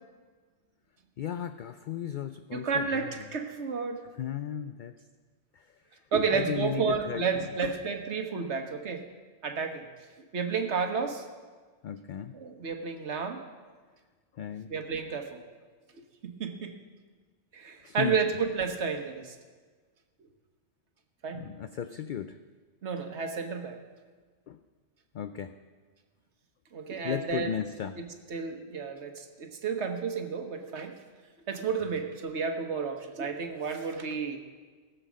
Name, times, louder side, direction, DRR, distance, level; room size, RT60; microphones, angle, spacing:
voice 1, 1.2-3.1 4.2-4.9 5.5-5.7 6.3-7.3 7.6-7.7 11.8-12.3 14.4-14.7 17.8-18.2 21.3-22.4 24.5-24.6 25.1-25.6 27.0-28.0 31.8-32.0, left 9 dB, 60° left, 10 dB, 0.5 m, -35 dB
voice 2, 2.5-4.0 6.1-9.0 9.4-9.8 10.3-11.2 12.3-13.4 14.7-15.4 16.2-16.7 17.5-19.3 21.2-21.4 22.8-23.8 26.7-27.6 28.0-30.9 31.5-34.4, right 5 dB, 65° right, 5 dB, 1.4 m, -31 dB
18.0 x 7.6 x 6.2 m, 1.4 s
omnidirectional pair, 1.2 m